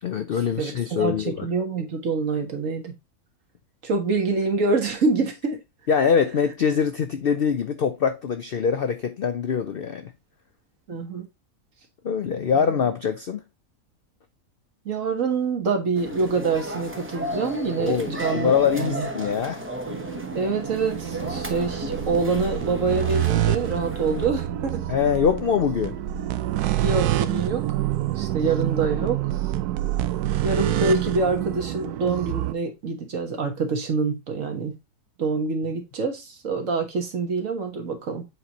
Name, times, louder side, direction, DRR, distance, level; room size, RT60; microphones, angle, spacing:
voice 1, 0.0-1.5 5.9-10.1 12.0-13.4 17.8-19.6 24.9-25.9, left 7 dB, 70° left, 0.5 m, -23 dB
voice 2, 0.5-2.9 3.8-5.6 10.9-11.3 12.5-12.7 14.8-19.1 20.3-24.9 26.8-27.6 28.1-29.2 30.4-34.7 35.2-38.3, right 4 dB, 55° right, 1.7 m, -26 dB
sound 1, 15.9-24.3, equal, 10° right, 0.7 m, -34 dB
sound 2, 19.9-32.5, right 13 dB, 90° right, 1.1 m, -27 dB
7.7 x 4.2 x 2.9 m
omnidirectional pair, 1.6 m